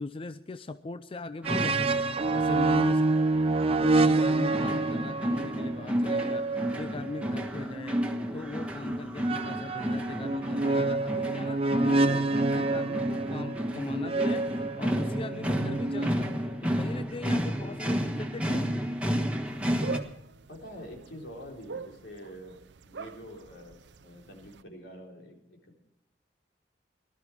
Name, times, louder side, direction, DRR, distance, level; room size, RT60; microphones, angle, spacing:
voice 1, 0.0-3.1 3.7-8.0 8.3-18.9, left 3 dB, 30° left, 12 dB, 0.5 m, -40 dB
sound 1, 1.4-20.0, equal, 5° right, 1.4 m, -32 dB
sound 2, 1.4-8.2 9.2-16.6, right 3 dB, 35° right, 0.7 m, -28 dB
voice 2, 2.8-3.3 20.5-22.6 22.8-25.8, equal, 80° left, 0 dB, 4.0 m, -46 dB
sound 3, 19.5-24.6, right 5 dB, 75° right, 0.6 m, -43 dB
19.0 x 12.5 x 4.8 m, 0.81 s
head